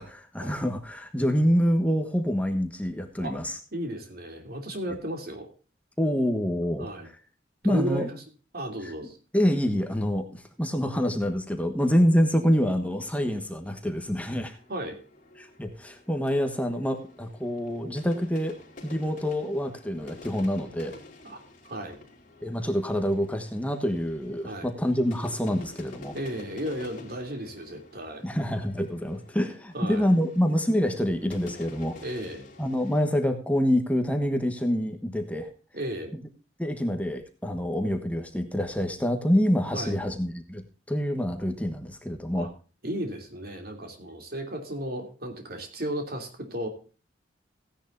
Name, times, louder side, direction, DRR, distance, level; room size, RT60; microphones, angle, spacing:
voice 1, 0.0-3.6 6.0-7.2 7.6-8.1 8.8-8.9 9.3-14.6 15.4-20.9 22.4-26.1 28.2-32.0 32.6-35.5 36.6-42.5, equal, 10° left, 6 dB, 1.3 m, -26 dB
voice 2, 3.7-5.5 6.8-7.1 7.6-8.2 8.5-9.2 14.7-15.0 21.2-22.0 24.4-24.7 26.1-28.2 29.7-30.1 32.0-32.5 35.7-36.1 39.7-40.0 42.3-42.5 42.8-46.7, equal, 55° right, 4 dB, 2.9 m, -34 dB
sound 1, 14.1-33.1, left 2 dB, 45° left, 3.6 m, -49 dB
16.5 x 10.0 x 2.6 m, 0.35 s
head